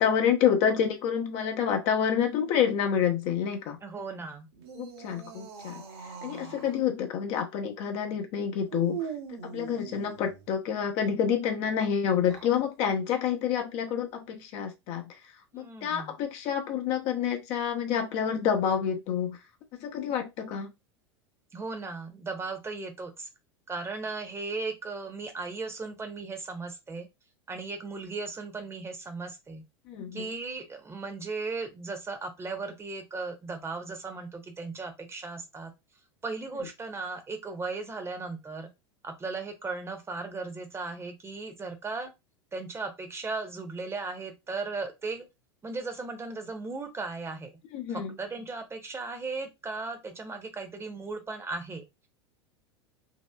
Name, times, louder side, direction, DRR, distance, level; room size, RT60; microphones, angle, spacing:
voice 1, 0.0-3.8 4.8-5.8 6.2-9.1 9.4-15.1 15.5-19.4 19.8-20.7 29.9-30.3 47.7-48.1, left 8 dB, 45° left, 0.7 m, -28 dB
voice 2, 3.8-4.5 15.5-16.1 21.5-23.3 23.7-27.1 27.5-29.6 30.1-35.7 36.2-38.7 39.0-42.1 42.5-45.3 45.6-47.5 47.9-51.8, right 3 dB, 20° right, 0.9 m, -36 dB
sound 1, 4.5-6.8 8.7-10.5 12.1-12.6, right 8 dB, 65° right, 1.0 m, -41 dB
3.0 x 2.8 x 2.2 m
figure-of-eight pair, 85°, 14 cm